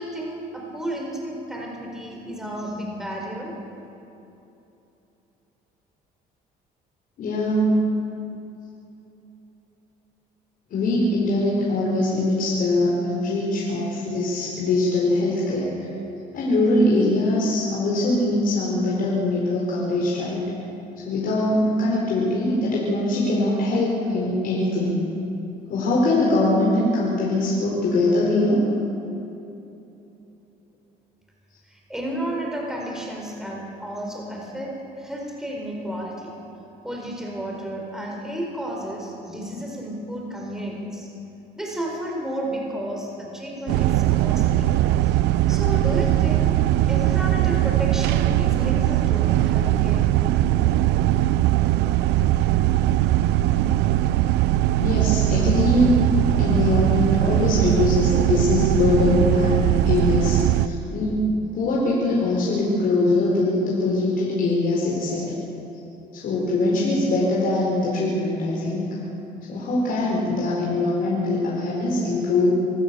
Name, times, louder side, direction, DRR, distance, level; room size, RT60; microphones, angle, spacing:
voice 1, 0.0-3.6 31.7-36.3 36.8-41.1 41.5-44.7 45.0-45.2 45.5-50.1, right 1 dB, 5° right, -1 dB, 4.4 m, -32 dB
voice 2, 7.2-7.9 10.7-15.7 16.3-20.5 21.0-25.0 25.7-28.6 54.8-56.0 56.4-61.3 61.5-65.3 66.1-68.9 69.5-72.6, left 2 dB, 60° left, -5 dB, 4.7 m, -22 dB
sound 1, 43.7-60.7, right 14 dB, 90° right, 0.6 m, -20 dB
25.5 x 15.5 x 7.0 m, 2.9 s
cardioid pair, 110°, 17 cm